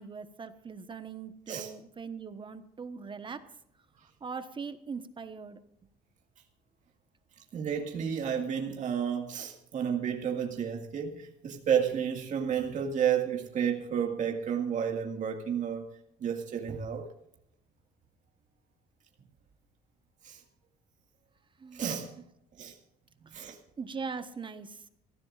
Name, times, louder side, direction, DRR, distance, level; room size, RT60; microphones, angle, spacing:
voice 1, 0.0-3.4 4.2-5.6 21.6-22.0 23.3-23.4 23.8-24.8, right 5 dB, 30° right, 10 dB, 1.1 m, -41 dB
voice 2, 7.4-17.1 20.2-20.4 21.7-22.1 22.6-22.8 23.3-23.6, right 8 dB, 50° right, 1 dB, 2.0 m, -31 dB
24.5 x 15.0 x 2.5 m, 0.78 s
cardioid pair, 110°, 17 cm